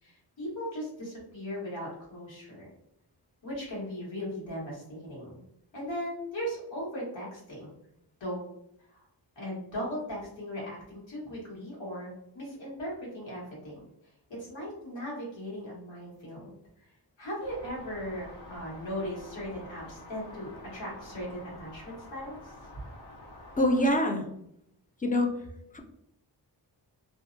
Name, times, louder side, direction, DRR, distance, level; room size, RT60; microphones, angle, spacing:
voice 1, 0.0-2.7 3.4-5.4 5.7-7.7 8.2-8.5 8.9-9.0 9.3-13.8 14.3-16.5 16.8-16.9 17.2-22.5, equal, 85° left, -5 dB, 1.4 m, -38 dB
sound 1, 17.4-23.9, left 1 dB, 65° left, 0.6 m, -48 dB
voice 2, 23.6-24.3 25.0-25.3 25.7-25.8, left 1 dB, 20° left, 4 dB, 0.4 m, -24 dB
2.6 x 2.0 x 2.5 m, 0.76 s
cardioid pair, 60°, 44 cm